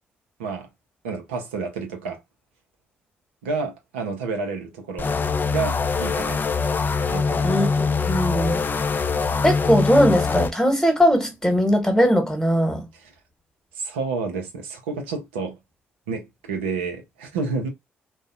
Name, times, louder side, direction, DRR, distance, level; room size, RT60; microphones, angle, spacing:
voice 1, 1.0-2.2 3.4-5.1 5.5-6.6 7.1-7.5 12.9-13.1 13.8-15.6 16.1-17.7, right 4 dB, 85° right, 0.5 m, -30 dB
sound 1, 5.0-10.5, left 5 dB, 35° left, 0.3 m, -23 dB
voice 2, 8.0-8.6 9.4-12.8, equal, 10° left, 1.1 m, -19 dB
2.5 x 2.1 x 2.4 m
hypercardioid pair, 45°, 6 cm